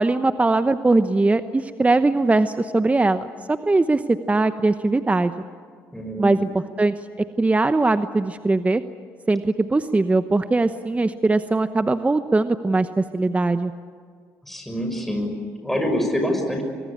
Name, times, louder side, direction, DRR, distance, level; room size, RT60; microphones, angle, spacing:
voice 1, 0.0-5.3 6.2-8.8 9.3-13.7, right 2 dB, 20° right, 11 dB, 0.9 m, -21 dB
voice 2, 5.9-6.5 14.4-16.6, equal, 5° left, 3 dB, 6.2 m, -26 dB
24.5 x 23.5 x 8.7 m, 2.1 s
supercardioid pair, 65°, 7 cm